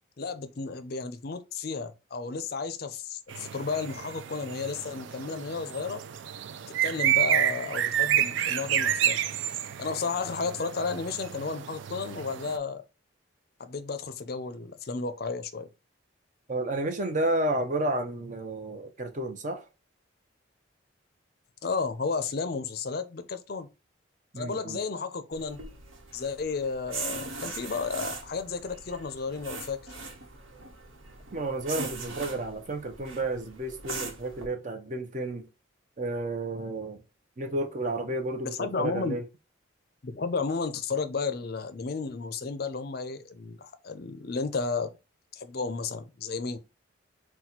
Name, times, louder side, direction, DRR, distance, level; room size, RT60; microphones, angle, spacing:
voice 1, 0.2-6.0 6.8-9.2 9.8-12.8 13.6-15.7 21.6-23.7 24.4-25.6 26.1-29.8 38.4-39.2 40.0-44.9 45.3-46.6, left 4 dB, 50° left, 0.5 m, -33 dB
sound 1, 3.3-12.6, right 10 dB, 70° right, 0.4 m, -30 dB
voice 2, 16.5-19.6 24.3-24.8 31.3-35.4 36.0-37.0 37.4-39.2, right 2 dB, 40° right, 0.7 m, -31 dB
sound 2, 25.3-34.5, right 3 dB, 90° right, 1.0 m, -40 dB
4.1 x 2.2 x 4.2 m
head